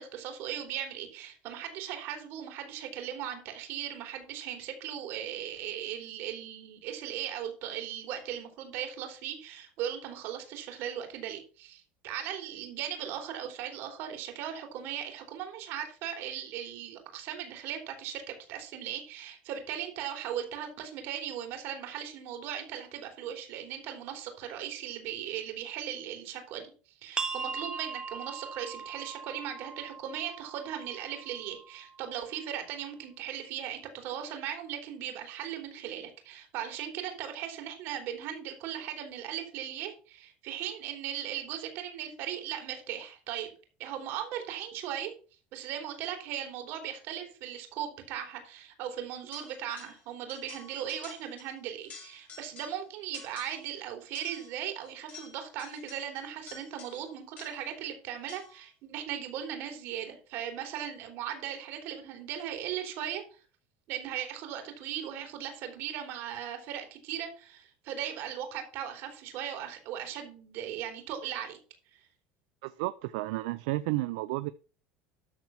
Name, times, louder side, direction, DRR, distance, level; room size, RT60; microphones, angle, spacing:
voice 1, 0.0-26.7 27.0-43.5 43.8-45.1 45.5-63.2 63.9-71.6 71.9-72.0, right 10 dB, 65° right, 3.5 m, -38 dB
sound 1, 27.2-32.5, right 5 dB, 20° right, 0.6 m, -40 dB
sound 2, 49.3-50.0 50.3-51.5 51.8-52.8 53.1-53.7 54.2-57.8 58.3-58.7, left 5 dB, 40° left, 3.9 m, -50 dB
voice 2, 72.6-74.5, right 19 dB, 80° right, 0.4 m, -32 dB
13.0 x 4.4 x 5.8 m
supercardioid pair, 110°, 4 cm